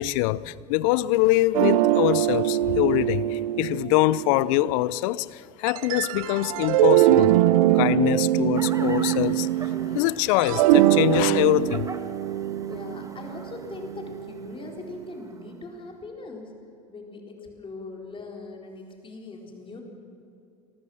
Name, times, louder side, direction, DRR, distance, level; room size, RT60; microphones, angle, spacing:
voice 1, 0.0-7.4 7.7-9.5 9.9-11.9, left 17 dB, 65° left, 0.6 m, -24 dB
sound 1, 1.5-4.7 5.7-10.0 10.3-14.5, right 14 dB, 75° right, 0.8 m, -22 dB
sound 2, 8.5-15.5, right 3 dB, 20° right, 1.4 m, -43 dB
voice 2, 12.6-16.5 16.9-19.8, left 3 dB, 30° left, 4.1 m, -40 dB
25.0 x 14.5 x 7.2 m
hypercardioid pair, 75°, 18 cm